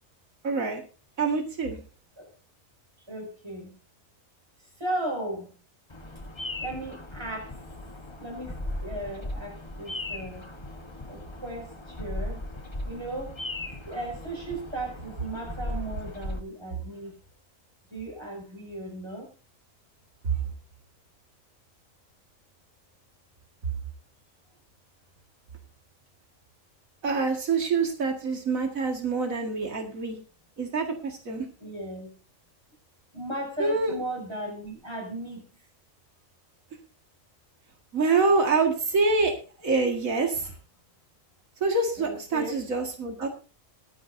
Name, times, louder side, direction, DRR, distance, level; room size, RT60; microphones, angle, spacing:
voice 1, 0.4-0.8 1.2-1.8 27.0-30.2 30.6-31.5 33.6-33.9 37.9-39.3 39.6-40.5 41.6-43.3, right 4 dB, 85° right, 3 dB, 2.4 m, -26 dB
voice 2, 3.1-3.7 4.8-5.6 6.6-7.6 8.2-8.6 8.8-10.7 11.1-12.4 12.9-13.4 13.9-17.1 17.9-19.3 31.6-32.1 33.1-35.4 40.4-40.5 42.0-42.6, right 1 dB, 20° right, -1 dB, 5.9 m, -36 dB
Bird vocalization bird call bird song, 5.9-16.4, left 1 dB, 20° left, 1.2 m, -37 dB
23.5 x 9.3 x 2.7 m, 0.34 s
omnidirectional pair, 1.4 m